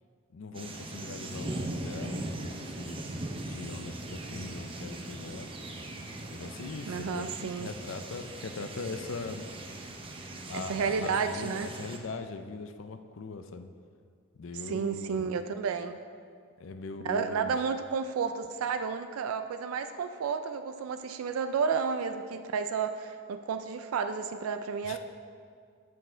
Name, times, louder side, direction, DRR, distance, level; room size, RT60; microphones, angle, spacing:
voice 1, 0.3-3.0 3.4-5.5 6.3-9.4 10.5-13.7 14.4-15.3 16.6-17.5 24.8-25.0, left 4 dB, 65° left, 8 dB, 0.5 m, -41 dB
sound 1, 0.5-12.0, right 2 dB, 25° right, 0.6 m, -40 dB
voice 2, 6.9-7.7 10.5-11.7 14.5-16.0 17.0-25.0, right 6 dB, 80° right, 8 dB, 0.3 m, -31 dB
7.6 x 6.1 x 4.4 m, 2.1 s
head